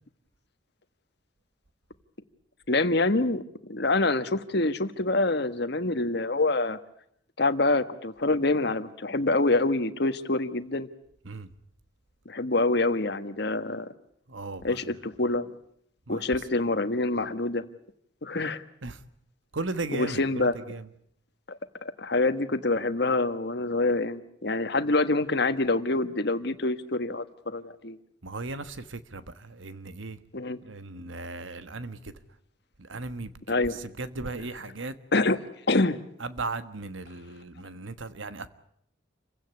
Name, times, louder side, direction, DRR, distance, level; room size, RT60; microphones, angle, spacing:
voice 1, 2.7-6.8 7.4-10.9 12.2-13.9 14.6-15.5 16.1-17.6 18.2-18.6 19.9-20.5 21.5-21.6 22.0-28.0 30.3-30.6 33.5-33.8 35.1-35.4 35.7-36.0, left 2 dB, 55° left, 1.4 m, -26 dB
voice 2, 14.3-15.0 16.1-16.4 18.8-19.0 19.5-20.9 28.2-30.2 30.6-32.1 32.8-34.9 36.2-38.5, right 3 dB, 75° right, 1.4 m, -37 dB
28.5 x 16.0 x 9.7 m
head